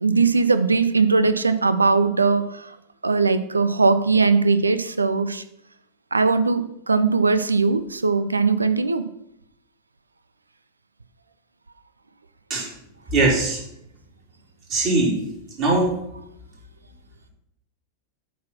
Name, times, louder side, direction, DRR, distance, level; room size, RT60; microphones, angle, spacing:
voice 1, 0.0-2.8 3.0-5.4 6.1-9.0, right 4 dB, 80° right, 12 dB, 0.5 m, -20 dB
voice 2, 13.1-13.6 14.7-15.2 15.6-15.9, right 2 dB, 40° right, -4 dB, 3.5 m, -20 dB
8.4 x 4.1 x 5.8 m, 0.79 s
figure-of-eight pair, 90°, 0 cm